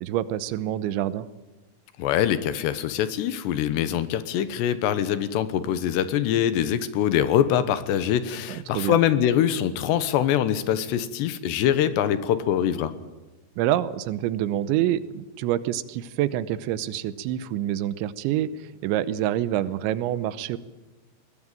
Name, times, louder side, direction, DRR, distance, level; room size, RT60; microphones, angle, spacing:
voice 1, 0.0-1.3 8.5-9.0 13.6-20.6, right 12 dB, 90° right, 15 dB, 3.3 m, -27 dB
voice 2, 2.0-12.9, left 10 dB, 75° left, 12 dB, 3.2 m, -24 dB
22.0 x 18.0 x 9.1 m, 1.1 s
omnidirectional pair, 5.1 m